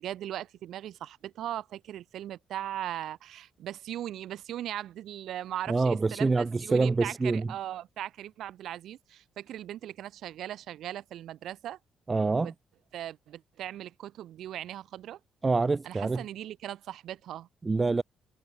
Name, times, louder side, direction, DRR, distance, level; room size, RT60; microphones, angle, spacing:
voice 1, 0.0-11.8 12.2-12.5 12.9-15.2 15.8-17.5, right 12 dB, 75° right, 2.7 m, -39 dB
voice 2, 5.7-7.5 12.1-12.5 15.4-16.2 17.6-18.0, right 3 dB, 25° right, 0.9 m, -26 dB
cardioid pair, 90°, 0 cm